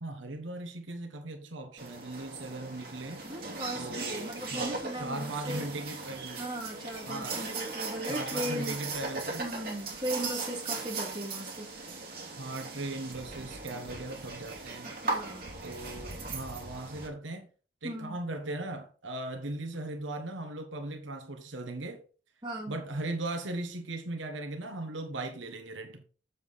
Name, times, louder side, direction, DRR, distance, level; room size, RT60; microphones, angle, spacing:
voice 1, 0.0-3.2 3.7-6.4 7.1-7.4 8.1-9.5 12.4-14.9 15.6-17.5 17.8-22.0 22.7-26.0, right 2 dB, 80° right, 1.3 m, -38 dB
sound 1, 1.8-17.1, right 3 dB, 50° right, 2.4 m, -38 dB
voice 2, 3.2-5.7 6.4-8.8 9.4-11.7 14.8-15.5 17.8-18.2 22.4-22.8, right 1 dB, 25° right, 2.3 m, -37 dB
7.4 x 7.1 x 4.1 m
head